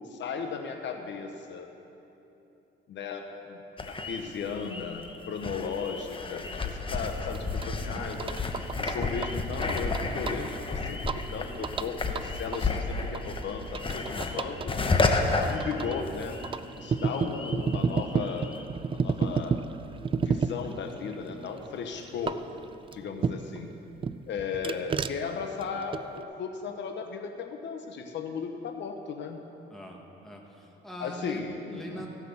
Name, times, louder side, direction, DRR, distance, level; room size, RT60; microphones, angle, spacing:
voice 1, 0.1-1.7 2.9-8.4 8.8-14.7 15.2-16.4 16.8-18.6 18.9-19.5 20.2-22.4 22.9-23.7 24.3-29.4 31.0-32.0, left 6 dB, 65° left, 4 dB, 0.9 m, -36 dB
sound 1, 3.8-16.5 16.8-18.6, left 3 dB, 25° left, 0.9 m, -32 dB
sound 2, 7.3-23.6 24.0-26.2, right 5 dB, 25° right, 0.3 m, -33 dB
voice 2, 29.7-31.4 31.7-32.1, equal, ahead, -1 dB, 1.7 m, -42 dB
15.5 x 5.9 x 7.0 m, 3.0 s
cardioid pair, 90°, 20 cm